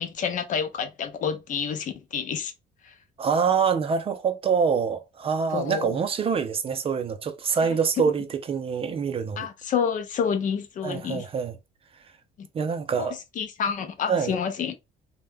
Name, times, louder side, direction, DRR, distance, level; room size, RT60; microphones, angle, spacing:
voice 1, 0.0-2.5 2.8-2.9 5.5-5.9 9.4-11.3 12.4-12.5 13.0-14.8, left 7 dB, 50° left, 0.5 m, -29 dB
voice 2, 3.2-9.5 10.8-11.6 12.5-13.2 14.1-14.4, right 6 dB, 35° right, 0.4 m, -25 dB
2.1 x 2.1 x 3.2 m
cardioid pair, 110°, 17 cm